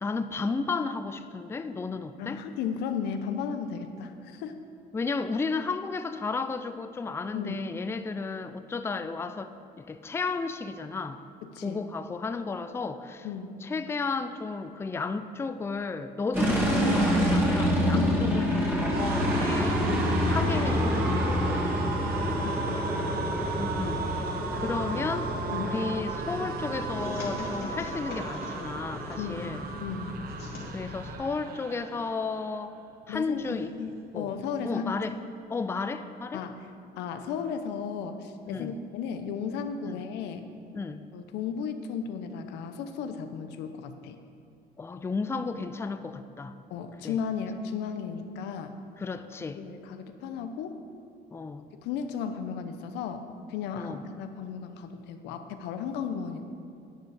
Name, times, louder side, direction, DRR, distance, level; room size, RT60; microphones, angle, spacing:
voice 1, 0.0-2.4 4.9-9.5 9.8-11.2 11.6-13.3 13.6-19.9 20.3-22.1 23.6-24.3 24.5-25.3 25.6-29.7 30.7-32.8 33.1-33.8 34.1-34.3 34.6-35.2 35.5-36.5 38.5-38.7 39.9-40.0 40.7-41.0 44.8-46.5 47.0-47.2 49.0-49.6 51.3-51.7 53.8-54.0, left 4 dB, 15° left, 10 dB, 0.4 m, -33 dB
voice 2, 2.2-4.6 7.3-7.6 11.4-11.8 13.2-13.6 17.9-18.2 22.4-22.9 25.5-25.8 29.2-29.5 29.8-30.2 33.1-35.1 36.3-36.6 37.0-40.5 41.1-44.2 46.7-48.8 49.5-50.8 51.8-53.2 53.5-56.5, left 6 dB, 90° left, 7 dB, 0.8 m, -35 dB
sound 1, 16.3-31.1, equal, 15° right, 2.3 m, -28 dB
sound 2, 17.5-32.6 32.9-33.2 33.4-34.2, right 5 dB, 65° right, 0.9 m, -37 dB
sound 3, 25.7-32.4, left 2 dB, 70° left, 2.6 m, -43 dB
10.0 x 8.8 x 4.9 m, 2.5 s
cardioid pair, 110°, 17 cm